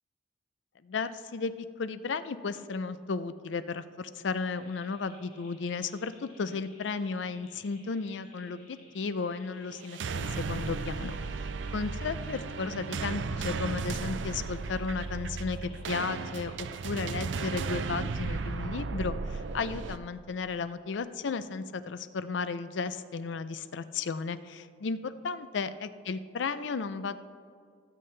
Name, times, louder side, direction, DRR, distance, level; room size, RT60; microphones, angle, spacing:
voice 1, 0.8-11.2 11.7-27.2, left 4 dB, 70° left, 13 dB, 0.5 m, -34 dB
sound 1, 4.5-18.5, left 2 dB, 40° left, 2.1 m, -59 dB
sound 2, 9.8-20.0, right 4 dB, 75° right, 0.5 m, -35 dB
19.0 x 8.6 x 3.3 m, 2.2 s
head